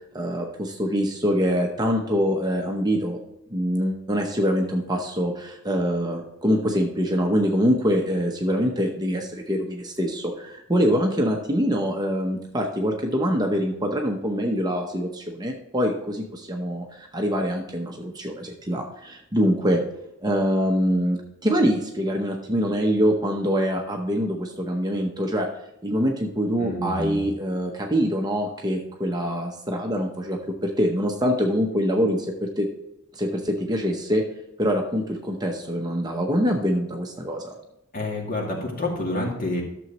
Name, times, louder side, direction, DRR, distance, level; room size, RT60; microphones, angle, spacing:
voice 1, 0.1-3.2 3.5-19.8 20.2-25.5 25.8-32.7 33.1-34.2 34.6-37.5, equal, 20° right, 2 dB, 0.8 m, -24 dB
voice 2, 26.6-27.3 37.9-39.6, left 2 dB, 40° left, -1 dB, 2.2 m, -28 dB
12.5 x 7.0 x 3.0 m, 0.84 s
head